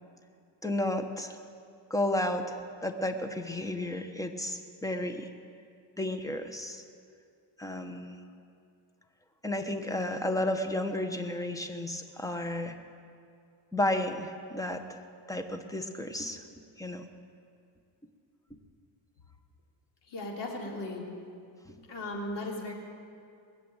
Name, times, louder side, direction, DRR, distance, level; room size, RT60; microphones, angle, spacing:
voice 1, 0.6-1.4 1.9-5.3 6.0-6.8 7.6-8.2 9.4-12.7 13.7-16.4 16.8-17.1, left 1 dB, 5° left, 7 dB, 1.2 m, -32 dB
voice 2, 20.1-21.0 21.9-22.7, left 2 dB, 60° left, -1 dB, 3.4 m, -36 dB
20.5 x 7.7 x 9.0 m, 2.4 s
cardioid pair, 100°, 46 cm